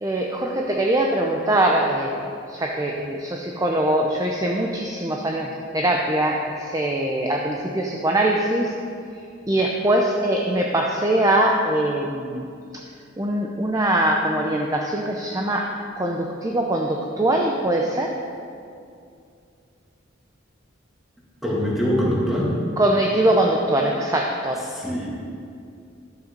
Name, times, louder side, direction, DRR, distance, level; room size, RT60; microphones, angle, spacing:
voice 1, 0.0-2.2 2.5-8.7 9.5-12.5 12.7-12.8 13.2-15.7 16.0-18.1 22.8-24.6, right 1 dB, 20° right, 0 dB, 0.6 m, -22 dB
voice 2, 21.4-22.6 24.7-25.1, equal, ahead, -5 dB, 2.2 m, -23 dB
11.5 x 7.7 x 5.2 m, 2.4 s
head